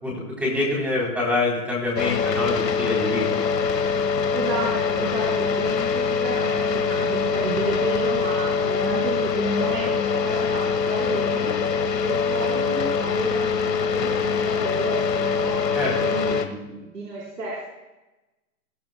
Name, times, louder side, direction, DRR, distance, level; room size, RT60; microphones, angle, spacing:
voice 1, 0.0-3.7 15.7-15.9, left 2 dB, 5° right, -4 dB, 3.4 m, -26 dB
sound 1, 2.0-16.5, left 6 dB, 80° left, 1.7 m, -24 dB
voice 2, 4.3-11.6 12.0-15.6 15.9-17.6, right 2 dB, 80° right, -6 dB, 4.4 m, -31 dB
21.5 x 12.0 x 2.2 m, 1.0 s
hypercardioid pair, 155°, 49 cm